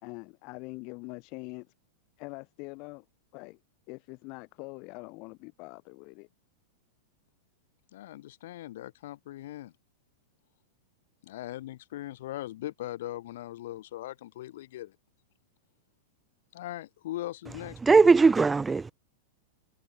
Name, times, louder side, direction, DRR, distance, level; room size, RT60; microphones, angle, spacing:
voice 1, 0.0-1.7 2.2-3.0 3.3-3.6 3.9-6.3, left 29 dB, 45° left, 3.8 m, -43 dB
voice 2, 7.9-9.7 11.2-15.0 16.5-17.8, left 14 dB, 70° left, 7.5 m, -40 dB
voice 3, 17.8-18.9, right 4 dB, 10° right, 1.8 m, -19 dB
supercardioid pair, 135°, 0 cm